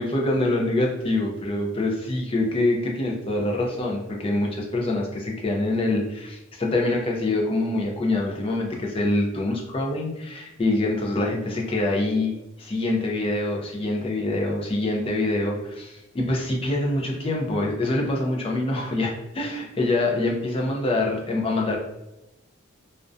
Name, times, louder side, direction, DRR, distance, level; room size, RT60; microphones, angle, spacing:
voice 1, 0.0-21.8, left 2 dB, 25° left, 0 dB, 0.4 m, -25 dB
2.4 x 2.1 x 2.5 m, 0.94 s
head